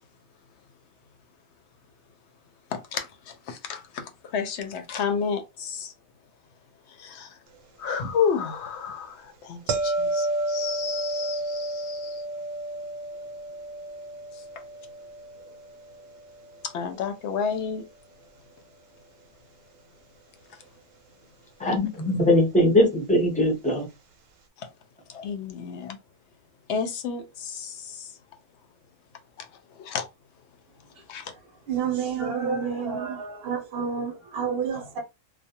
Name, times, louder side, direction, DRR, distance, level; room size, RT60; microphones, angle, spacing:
voice 1, 2.7-5.9 7.0-7.4 7.8-12.2 16.6-17.9 24.6-24.7 25.1-26.0 26.7-28.1 29.4-29.5 29.8-30.1 31.1-31.3, left 6 dB, 65° left, 0.8 m, -31 dB
sound 1, 9.7-16.7 21.9-22.1, right 2 dB, 80° right, 1.0 m, -31 dB
voice 2, 21.6-23.9, left 1 dB, 10° left, 0.5 m, -21 dB
voice 3, 31.7-35.0, right 6 dB, 55° right, 0.8 m, -29 dB
2.3 x 2.1 x 2.8 m
omnidirectional pair, 1.3 m